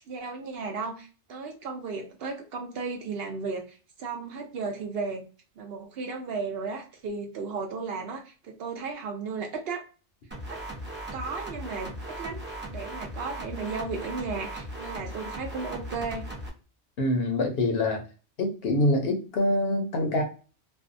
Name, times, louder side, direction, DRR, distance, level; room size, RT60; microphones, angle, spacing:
voice 1, 0.1-5.2 5.6-9.8 10.5-10.6 11.1-12.4 12.7-16.3, right 4 dB, 65° right, 2 dB, 0.7 m, -35 dB
sound 1, 10.3-16.5, right 1 dB, 20° right, 0.3 m, -38 dB
voice 2, 17.0-18.0 18.4-20.2, left 1 dB, 65° left, 3 dB, 0.8 m, -25 dB
2.6 x 2.2 x 2.4 m, 0.35 s
omnidirectional pair, 1.2 m